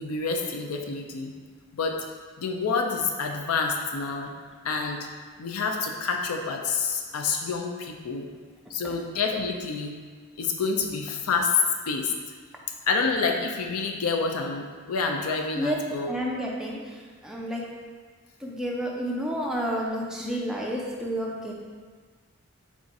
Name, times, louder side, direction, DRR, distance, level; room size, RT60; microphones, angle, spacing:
voice 1, 0.0-1.3 1.7-2.0 2.4-4.3 4.6-5.1 5.4-8.3 8.7-9.9 10.4-12.1 12.9-16.1, left 4 dB, 85° left, 3 dB, 0.4 m, -28 dB
voice 2, 16.1-16.8 17.2-17.7 18.4-21.5, equal, 5° right, -3 dB, 0.4 m, -30 dB
3.6 x 2.5 x 4.0 m, 1.5 s
head